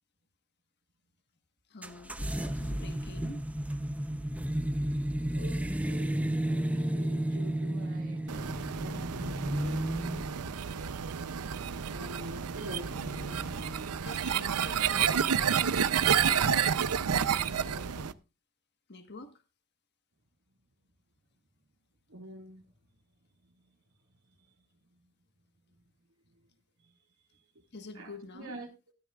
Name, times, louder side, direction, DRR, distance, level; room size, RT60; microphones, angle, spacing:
voice 1, 1.7-3.5 13.0-13.6 14.0-15.1 16.0-16.6 17.5-18.1 18.9-19.3 27.7-28.6, left 3 dB, 50° left, 8 dB, 1.4 m, -47 dB
sound 1, 1.8-14.0, right 1 dB, 5° right, 0.6 m, -34 dB
voice 2, 5.3-9.7 11.9-13.0 14.8-14.9 22.1-22.6 26.8-26.9 27.9-28.9, equal, 65° right, -1 dB, 2.0 m, -46 dB
sound 2, 8.3-18.1, right 8 dB, 90° right, 0.6 m, -30 dB
14.5 x 12.5 x 2.4 m, 0.28 s
head